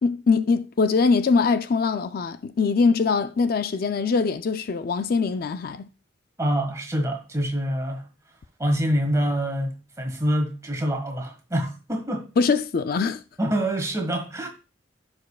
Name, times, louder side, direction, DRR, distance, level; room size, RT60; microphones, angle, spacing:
voice 1, 0.0-5.9 12.4-13.2, left 4 dB, 50° left, 0.4 m, -22 dB
voice 2, 6.4-8.1 8.6-12.3 13.4-14.5, equal, 15° right, 1.5 m, -26 dB
14.5 x 5.2 x 2.3 m
head